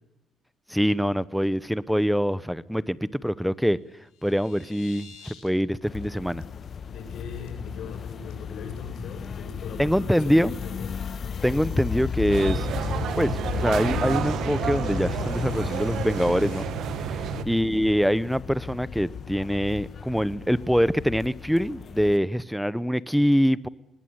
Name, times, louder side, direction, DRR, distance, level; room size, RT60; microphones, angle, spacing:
voice 1, 0.7-3.8 4.2-5.1 5.4-6.4 9.8-10.5 11.4-12.7 13.2-16.6 17.1-23.7, equal, ahead, 0.8 m, -24 dB
sound 1, 3.8-5.5 5.8-6.1 6.4-6.5 6.9-7.1 7.5-7.9 8.3-16.6, left 7 dB, 90° left, 5.4 m, -53 dB
sound 2, 5.8-22.2, left 7 dB, 50° left, 1.1 m, -34 dB
voice 2, 6.9-11.0 17.3-17.6, left 5 dB, 70° left, 7.1 m, -40 dB
sound 3, 12.3-17.4, right 9 dB, 75° right, 1.5 m, -30 dB
20.0 x 19.5 x 9.6 m
cardioid pair, 90°, 0 cm